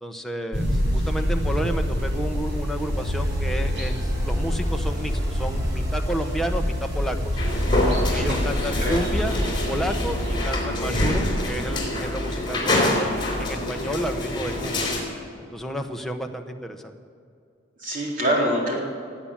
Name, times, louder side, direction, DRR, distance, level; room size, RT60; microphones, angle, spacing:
voice 1, 0.0-7.4 8.1-10.2 10.4-13.1 13.4-14.9 15.4-17.0, equal, ahead, 3 dB, 0.9 m, -31 dB
sound 1, 0.5-10.4, equal, 65° right, 4.8 m, -26 dB
sound 2, 3.0-12.1, right 1 dB, 20° right, 1.3 m, -37 dB
sound 3, 7.4-15.0, left 1 dB, 25° left, 3.5 m, -26 dB
voice 2, 17.8-18.8, equal, 45° right, -3 dB, 4.0 m, -25 dB
18.5 x 8.9 x 7.4 m, 2.5 s
head